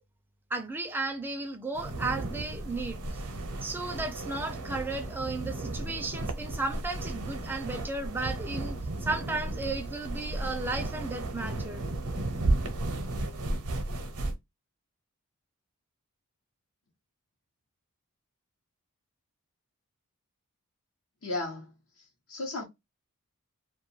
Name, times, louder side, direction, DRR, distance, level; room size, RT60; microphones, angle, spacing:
voice 1, 0.5-3.2 3.6-11.8, right 3 dB, 10° right, 0.4 m, -34 dB
sound 1, 1.7-14.3, right 2 dB, 80° right, 0.6 m, -34 dB
voice 2, 21.2-22.6, left 2 dB, 65° left, 0.8 m, -36 dB
2.2 x 2.2 x 3.1 m
head